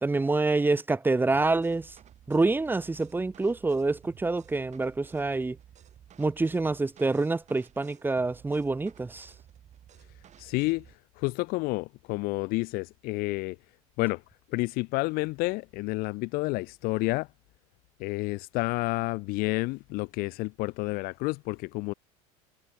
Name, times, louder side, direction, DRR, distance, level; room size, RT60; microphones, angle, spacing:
voice 1, 0.0-1.9 2.3-5.6 6.2-9.3, right 3 dB, 10° right, 0.7 m, -27 dB
sound 1, 1.3-11.0, right 10 dB, 40° right, 5.9 m, -54 dB
voice 2, 10.4-10.8 11.2-13.6 14.0-14.2 14.5-17.3 18.0-21.9, left 24 dB, 55° left, 0.4 m, -30 dB
supercardioid pair, 100°, 19 cm